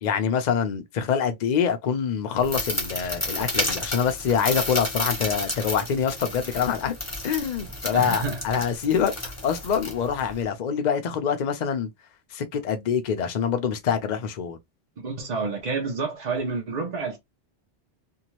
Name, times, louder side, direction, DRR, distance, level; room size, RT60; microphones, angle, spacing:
voice 1, 0.0-7.0 7.2-11.9 12.3-14.6, left 7 dB, 50° left, 0.6 m, -25 dB
sound 1, 2.4-10.4, left 1 dB, 15° left, 0.8 m, -31 dB
voice 2, 7.9-8.7 15.0-17.2, right 4 dB, 45° right, 0.7 m, -29 dB
2.7 x 2.3 x 2.9 m
omnidirectional pair, 1.2 m